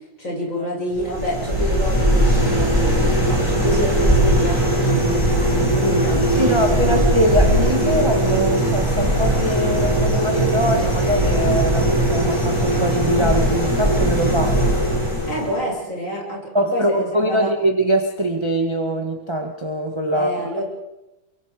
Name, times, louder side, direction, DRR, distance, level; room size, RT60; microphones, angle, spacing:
voice 1, 0.2-7.0 15.3-17.5 20.1-20.6, equal, 40° left, -3 dB, 8.0 m, -27 dB
sound 1, 0.9-15.6, right 1 dB, 15° left, 6.1 m, -19 dB
voice 2, 6.4-14.6 16.5-20.6, right 1 dB, 15° right, 4 dB, 1.6 m, -22 dB
29.5 x 24.0 x 4.9 m, 0.96 s
omnidirectional pair, 2.1 m